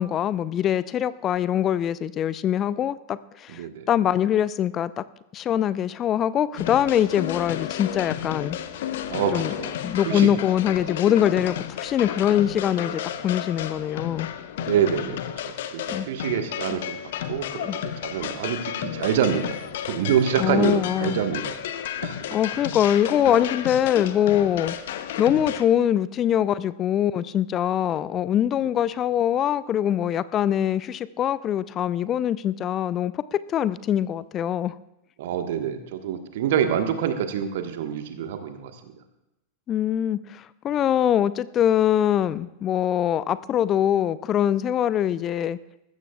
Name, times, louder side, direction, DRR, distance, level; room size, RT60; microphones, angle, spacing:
voice 1, 0.0-5.0 5.3-8.6 9.3-9.5 9.8-14.3 15.9-16.1 17.7-17.8 20.4-21.2 22.3-24.8 25.2-34.8 39.7-45.6, left 10 dB, 30° left, 18 dB, 0.4 m, -23 dB
voice 2, 3.5-3.9 9.1-9.7 10.0-10.3 14.6-15.2 15.5-17.0 17.3-19.5 19.8-21.6 22.0-22.2 35.2-38.7, right 8 dB, 55° right, 7 dB, 1.4 m, -26 dB
sound 1, 6.6-25.6, left 10 dB, 55° left, 0.8 m, -32 dB
20.5 x 14.5 x 2.4 m, 0.90 s
figure-of-eight pair, 90°, 0 cm